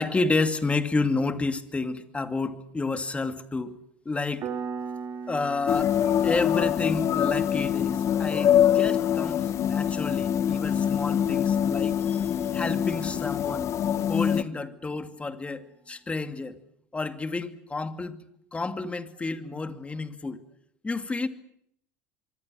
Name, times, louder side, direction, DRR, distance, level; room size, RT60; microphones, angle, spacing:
voice 1, 0.0-3.7 4.0-4.5 5.3-5.9 6.2-13.7 14.1-16.6 16.9-18.2 18.5-20.4 20.8-21.3, left 3 dB, 15° left, 9 dB, 2.6 m, -30 dB
Piano, 4.4-14.8, right 6 dB, 50° right, 3.5 m, -43 dB
sound 1, 5.7-14.4, left 9 dB, 45° left, 1.2 m, -24 dB
25.0 x 24.5 x 7.9 m, 0.72 s
hypercardioid pair, 85°, 7 cm